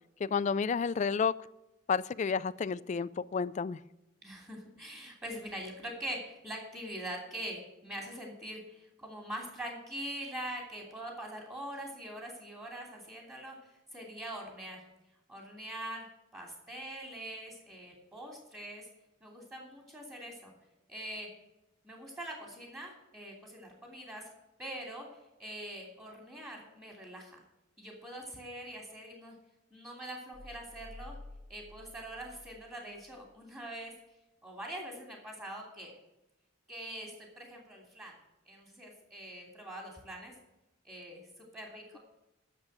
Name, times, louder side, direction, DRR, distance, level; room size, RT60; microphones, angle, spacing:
voice 1, 0.2-1.3 1.9-3.8, left 5 dB, 35° left, 17 dB, 0.3 m, -30 dB
voice 2, 4.2-14.8 15.3-16.1 16.3-18.9 19.2-20.5 20.9-21.3 21.8-24.3 24.6-25.1 25.4-27.4 27.8-29.3 29.7-31.2 31.5-33.9 34.4-35.9 36.7-38.1 38.4-40.3 40.8-42.0, right 1 dB, 15° right, -1 dB, 2.7 m, -43 dB
sound 1, 30.3-32.9 33.2-33.4, left 2 dB, 50° right, 2.6 m, -51 dB
10.5 x 7.0 x 7.7 m, 0.97 s
head